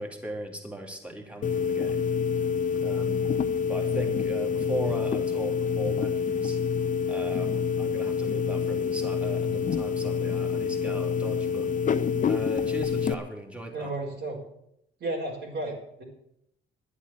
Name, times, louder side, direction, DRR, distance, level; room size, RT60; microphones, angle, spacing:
voice 1, 0.0-2.1 2.7-3.3 3.7-6.6 7.1-11.7 12.3-13.9, right 1 dB, 5° right, 2 dB, 3.0 m, -38 dB
sound 1, 1.4-13.1, left 6 dB, 40° left, 0.7 m, -27 dB
voice 2, 13.7-14.4 15.0-16.0, right 2 dB, 65° right, -4 dB, 4.5 m, -33 dB
11.5 x 8.3 x 8.8 m, 0.76 s
cardioid pair, 90°, 20 cm